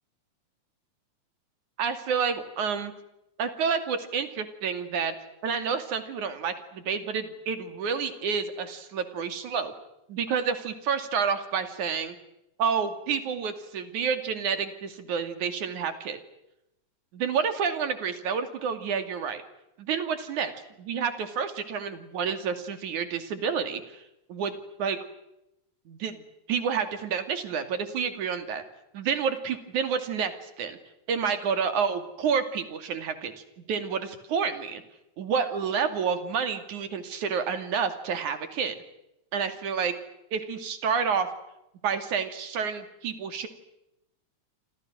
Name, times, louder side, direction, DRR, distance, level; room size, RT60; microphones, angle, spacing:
voice 1, 1.8-2.9 3.4-5.1 5.4-9.7 10.1-12.2 12.6-16.2 17.1-19.4 19.8-20.5 20.8-24.0 24.3-24.5 24.8-25.0 25.9-26.2 26.5-28.6 28.9-30.8 31.1-33.3 33.7-34.8 35.2-38.8 39.3-39.9 40.3-41.3 41.8-43.5, right 6 dB, 90° right, 9 dB, 4.0 m, -29 dB
28.0 x 27.5 x 6.3 m, 0.86 s
omnidirectional pair, 3.3 m